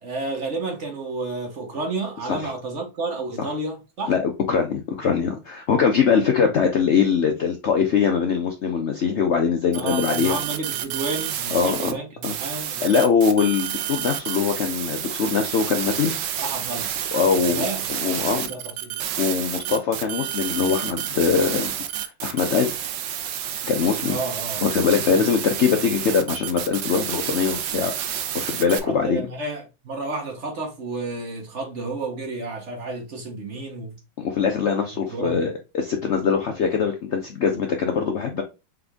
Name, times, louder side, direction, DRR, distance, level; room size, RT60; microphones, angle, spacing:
voice 1, 0.0-4.1 6.1-6.5 9.7-12.9 16.4-16.9 17.3-19.1 24.0-24.7 25.1-25.3 28.8-33.9 35.1-35.5, right 3 dB, 45° right, 1.1 m, -31 dB
voice 2, 4.1-10.4 11.5-11.9 12.2-12.3 12.8-16.2 17.1-18.5 19.2-22.8 23.6-24.2 24.6-29.3 34.2-38.4, left 6 dB, 90° left, 0.6 m, -22 dB
sound 1, 9.7-11.9 12.2-28.8, right 10 dB, 70° right, 1.2 m, -29 dB
3.8 x 3.4 x 3.4 m
omnidirectional pair, 2.0 m